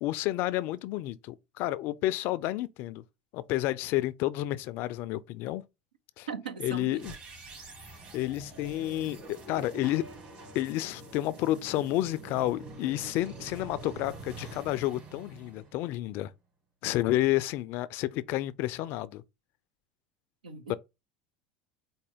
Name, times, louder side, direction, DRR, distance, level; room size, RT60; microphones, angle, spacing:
voice 1, 0.0-3.0 3.3-5.6 6.2-6.3 6.6-7.1 7.6-7.7 8.1-10.1 10.5-16.3 16.8-19.2 20.7-20.8, left 15 dB, 55° left, 0.3 m, -30 dB
voice 2, 6.3-7.0 20.4-20.8, right 6 dB, 90° right, 0.5 m, -38 dB
sound 1, 6.9-16.1, right 2 dB, 45° right, 2.2 m, -46 dB
4.4 x 2.1 x 3.5 m
hypercardioid pair, 80°, 4 cm